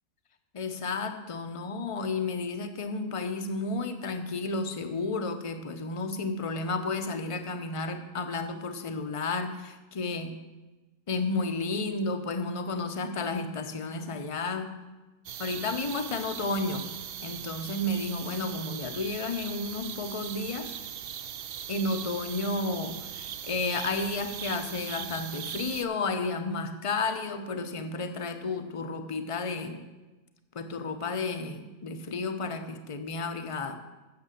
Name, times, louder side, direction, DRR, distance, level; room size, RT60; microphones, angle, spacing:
voice 1, 0.5-10.3 11.1-14.8 15.4-16.9 17.2-20.7 21.7-29.8 30.5-33.8, left 3 dB, 35° left, 8 dB, 0.6 m, -32 dB
sound 1, 15.3-25.8, right 9 dB, 65° right, 0.6 m, -39 dB
8.7 x 6.8 x 7.6 m, 1.2 s
omnidirectional pair, 1.5 m